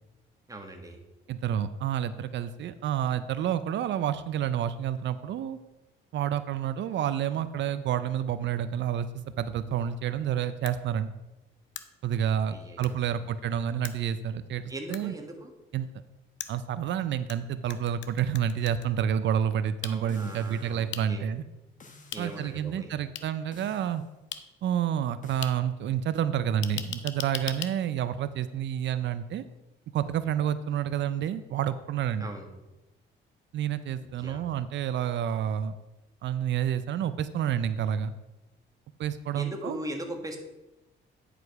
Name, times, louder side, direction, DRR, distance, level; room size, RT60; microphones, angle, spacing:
voice 1, 0.5-1.0 12.5-13.4 14.7-15.5 19.8-21.2 22.1-22.9 32.2-32.5 34.2-34.4 39.3-40.4, right 1 dB, 15° right, 4 dB, 1.5 m, -40 dB
voice 2, 1.3-5.6 6.1-9.1 9.4-11.1 12.0-15.1 15.7-15.9 16.5-21.4 22.2-24.0 24.6-29.4 29.9-32.3 33.5-35.7 36.2-38.1 39.0-39.8, right 9 dB, 65° right, 13 dB, 0.5 m, -29 dB
sound 1, 10.7-10.8 11.8-11.9 12.8-12.9 13.8-13.9 14.9-15.0 16.4-17.4 17.7-18.9 19.8-19.9 20.9-21.0 22.1-22.2 23.1-23.2 24.3-24.4 25.4-25.5 26.6-27.7, left 10 dB, 70° left, 0.6 m, -37 dB
sound 2, 20.1-20.9 21.8-22.5 23.5-24.1 25.2-25.6, left 3 dB, 40° left, 1.4 m, -53 dB
9.7 x 5.0 x 4.7 m, 1.0 s
cardioid pair, 90°, 20 cm